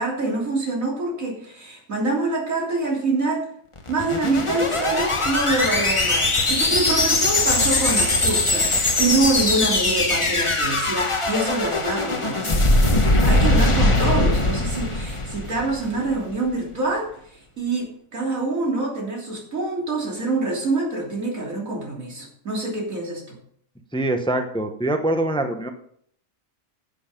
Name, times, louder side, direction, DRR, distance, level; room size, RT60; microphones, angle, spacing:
voice 1, 0.0-3.4 3.9-12.7 13.0-17.1 17.6-23.4, right 2 dB, 90° right, -2 dB, 3.6 m, -25 dB
sound 1, 3.8-16.1, left 2 dB, 25° left, 1.0 m, -21 dB
voice 2, 23.9-25.7, right 1 dB, 5° left, 6 dB, 0.7 m, -24 dB
10.0 x 8.0 x 5.2 m, 0.65 s
omnidirectional pair, 1.4 m